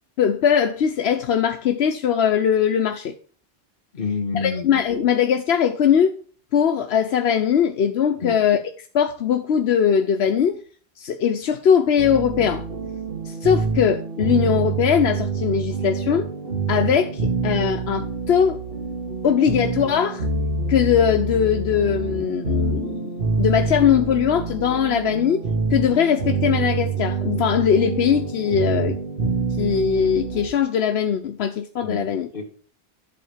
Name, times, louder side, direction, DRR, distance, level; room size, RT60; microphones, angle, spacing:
voice 1, 0.2-3.2 4.3-6.1 6.5-8.6 8.9-10.6 11.0-12.7 13.3-16.3 16.7-18.6 19.2-20.3 20.7-25.4 25.7-29.0 29.6-32.3, left 8 dB, 85° left, 1.0 m, -20 dB
voice 2, 3.9-4.7 8.2-8.4 31.8-32.4, left 5 dB, 60° left, 2.2 m, -28 dB
sound 1, 12.0-30.5, right 4 dB, 70° right, 1.9 m, -26 dB
11.0 x 4.2 x 7.2 m
omnidirectional pair, 1.0 m